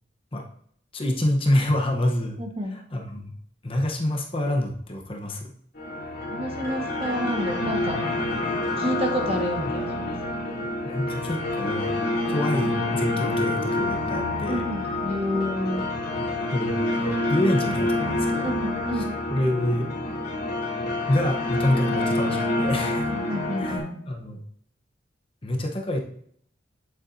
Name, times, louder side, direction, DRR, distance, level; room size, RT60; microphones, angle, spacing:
voice 1, 0.9-2.4 2.7-3.3 3.6-5.5 9.5-9.7 10.8-11.9 12.2-14.7 16.5-18.5 18.9-19.0 19.3-19.9 21.1-23.1 23.6-24.4 25.4-26.0, left 1 dB, 30° left, 2 dB, 0.9 m, -27 dB
voice 2, 2.4-2.8 6.3-8.0 8.8-10.1 14.5-15.9 18.4-19.2 23.1-24.0, equal, 30° right, 2 dB, 1.3 m, -29 dB
sound 1, 5.8-23.8, left 1 dB, 55° left, 2.6 m, -27 dB
8.7 x 7.1 x 2.7 m, 0.65 s
head